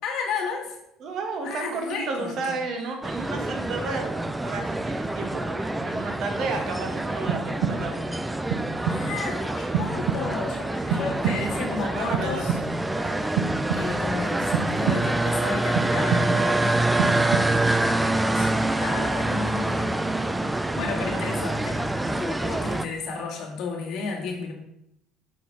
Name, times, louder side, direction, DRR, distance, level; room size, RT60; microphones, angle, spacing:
voice 1, 0.0-0.8 1.4-2.6 8.9-12.6 13.7-18.5 18.8-19.9 20.7-24.5, left 4 dB, 65° left, -1 dB, 1.9 m, -33 dB
voice 2, 1.0-8.2 10.9-13.4 21.0-21.2 22.5-22.9, right 4 dB, 55° right, 3 dB, 1.3 m, -33 dB
sound 1, 3.0-22.8, right 2 dB, 10° right, 0.3 m, -26 dB
sound 2, 7.3-8.1 8.5-9.2 9.7-10.5 10.9-11.7 12.1-12.9 13.4-14.2 14.5-15.3 15.8-16.6 17.0-17.8, right 7 dB, 90° right, 0.5 m, -29 dB
6.0 x 4.1 x 4.5 m, 0.81 s
cardioid pair, 115°, 0 cm